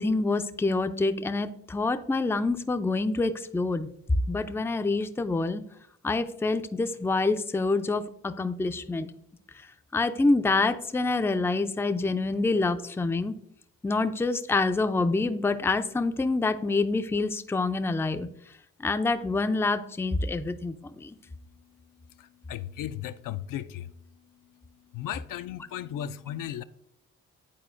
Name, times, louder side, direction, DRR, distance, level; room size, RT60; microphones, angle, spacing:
voice 1, 0.0-3.9 4.3-5.6 6.0-9.1 9.9-13.3 13.8-18.3 18.8-21.2, left 3 dB, 5° left, 0.4 m, -26 dB
voice 2, 22.2-23.9 24.9-26.6, left 11 dB, 60° left, 0.5 m, -36 dB
10.5 x 4.2 x 2.5 m
supercardioid pair, 55°, 36 cm